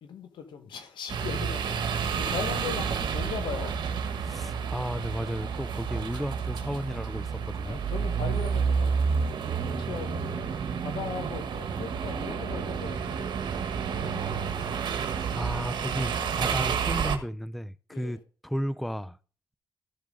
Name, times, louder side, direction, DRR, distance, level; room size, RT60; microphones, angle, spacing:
voice 1, 0.0-3.8 7.6-9.0 9.4-13.4 13.8-15.0 17.9-18.2, left 7 dB, 75° left, 1.5 m, -39 dB
sound 1, 1.1-17.2, right 6 dB, 70° right, 1.2 m, -30 dB
voice 2, 4.2-7.8 14.4-14.5 14.9-19.2, equal, ahead, 0.5 m, -34 dB
13.5 x 7.3 x 3.8 m
hypercardioid pair, 40°, 8 cm